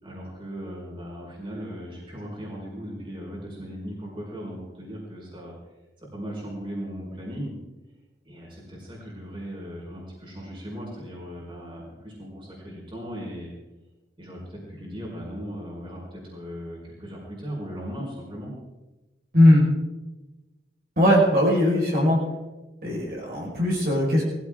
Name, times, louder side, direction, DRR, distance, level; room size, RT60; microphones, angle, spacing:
voice 1, 0.0-5.5 6.1-7.5 8.2-13.5 14.2-18.5, equal, 25° right, -4 dB, 5.3 m, -37 dB
voice 2, 21.0-22.2 22.8-24.2, left 1 dB, 50° right, -4 dB, 5.2 m, -19 dB
20.5 x 15.5 x 3.8 m, 1.1 s
head